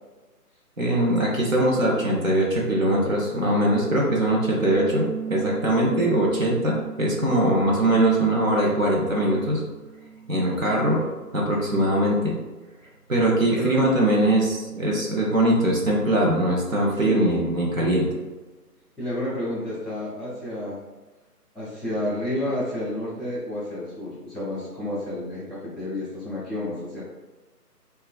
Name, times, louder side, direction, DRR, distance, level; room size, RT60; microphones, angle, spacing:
voice 1, 0.8-9.6 10.3-11.0 11.3-12.4 13.1-18.1, right 1 dB, 55° right, -3 dB, 0.6 m, -22 dB
sound 1, 4.7-10.9, right 6 dB, 85° right, 1.1 m, -38 dB
voice 2, 10.5-11.0 13.5-13.8 17.0-17.2 19.0-20.8 21.5-27.0, left 1 dB, ahead, -9 dB, 0.5 m, -30 dB
3.2 x 2.2 x 2.2 m, 1.2 s
figure-of-eight pair, 170°, 48 cm